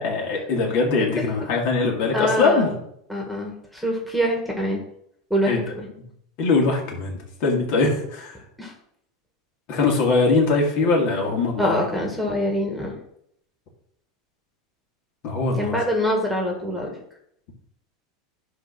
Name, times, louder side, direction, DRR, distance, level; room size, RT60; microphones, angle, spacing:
voice 1, 0.0-2.8 5.5-5.6 6.4-8.4 9.7-11.8 15.2-15.8, left 3 dB, 55° left, -1 dB, 2.6 m, -22 dB
voice 2, 2.1-2.7 3.1-4.8 5.3-5.9 8.6-8.7 11.6-12.9 15.6-16.9, equal, ahead, 1 dB, 1.8 m, -24 dB
9.9 x 3.4 x 6.1 m, 0.71 s
supercardioid pair, 120°, 3 cm